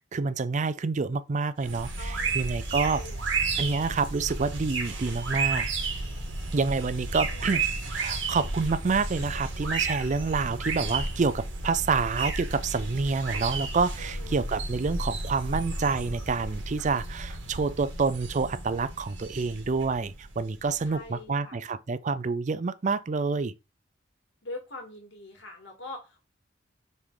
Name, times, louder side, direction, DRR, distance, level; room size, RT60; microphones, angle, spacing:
voice 1, 0.1-3.0 3.6-5.7 6.5-7.6 7.9-23.5, right 4 dB, 40° right, 0.4 m, -28 dB
voice 2, 1.6-2.5 2.8-3.4 7.3-7.6 14.0-14.5 20.8-21.6 24.4-26.2, left 2 dB, 70° left, 2.2 m, -44 dB
sound 1, 1.6-21.0, right 3 dB, 75° right, 2.2 m, -33 dB
5.3 x 3.7 x 4.9 m
head